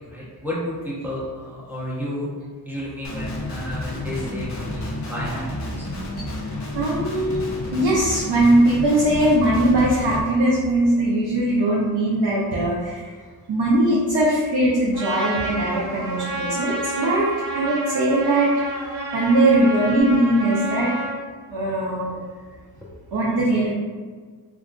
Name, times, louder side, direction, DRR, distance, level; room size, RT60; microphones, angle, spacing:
voice 1, 0.1-2.3 2.7-5.4 5.8-5.9, left 1 dB, 5° right, -7 dB, 0.7 m, -31 dB
Guitar, 3.0-10.2, left 1 dB, 45° left, 0.5 m, -30 dB
voice 2, 6.7-13.1 13.5-20.9 21.5-22.2 23.1-23.7, right 1 dB, 80° right, -5 dB, 0.7 m, -20 dB
Trumpet, 14.9-21.2, right 1 dB, 50° right, 1.1 m, -30 dB
3.6 x 2.5 x 2.3 m, 1.5 s
wide cardioid pair, 170°, 40 cm